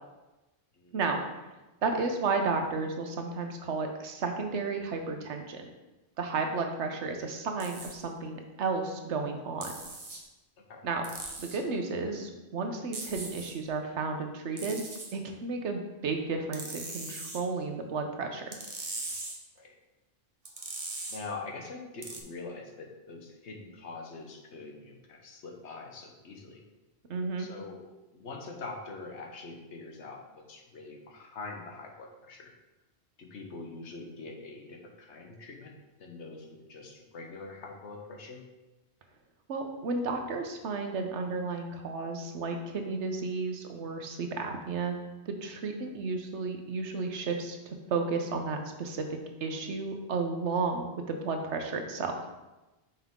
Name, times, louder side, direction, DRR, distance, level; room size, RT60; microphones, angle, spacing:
voice 1, 0.9-1.5 1.8-5.7 6.2-9.7 10.8-11.0 11.4-14.8 15.1-18.4 27.1-27.5 39.5-45.0 45.3-47.6 47.9-49.0 49.4-52.1, right 4 dB, 90° right, 4 dB, 1.1 m, -32 dB
sound 1, 7.6-8.0 9.6-10.2 11.0-11.6 12.9-13.5 14.6-15.1 16.5-17.4 18.5-19.4 20.4-21.2 22.0-22.2, right 3 dB, 35° right, 0.8 m, -40 dB
voice 2, 21.1-26.6 27.4-27.8 28.1-32.5 33.2-35.7 36.0-38.4, left 3 dB, 85° left, 1 dB, 1.3 m, -44 dB
5.7 x 5.7 x 3.6 m, 1.1 s
omnidirectional pair, 1.1 m